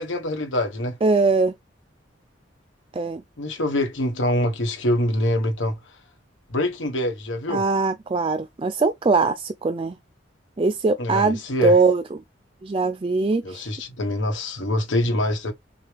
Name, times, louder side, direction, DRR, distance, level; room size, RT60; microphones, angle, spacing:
voice 1, 0.0-1.0 3.4-5.8 6.5-7.6 11.0-11.8 13.4-15.5, left 1 dB, 80° left, 1.4 m, -25 dB
voice 2, 1.0-1.5 2.9-3.2 7.5-9.9 10.6-12.2 12.6-13.7, right 3 dB, 30° right, 0.4 m, -21 dB
6.6 x 2.3 x 3.4 m
head